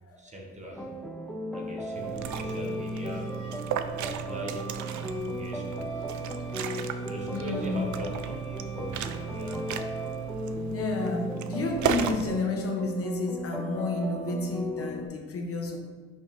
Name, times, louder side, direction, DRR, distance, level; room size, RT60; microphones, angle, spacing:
voice 1, 0.2-0.9 1.5-3.6 3.9-6.2 7.0-9.8, equal, 25° right, -1 dB, 1.0 m, -41 dB
sound 1, 0.7-15.1, equal, ahead, 0.3 m, -36 dB
Liquid, 2.0-12.3, right 8 dB, 75° right, 0.5 m, -35 dB
Wind instrument woodwind instrument, 2.2-10.5, right 3 dB, 75° left, 1.8 m, -49 dB
voice 2, 7.3-7.9 10.4-15.8, left 2 dB, 50° left, 1 dB, 1.0 m, -31 dB
5.4 x 3.5 x 5.2 m, 1.4 s
cardioid pair, 135°, 30 cm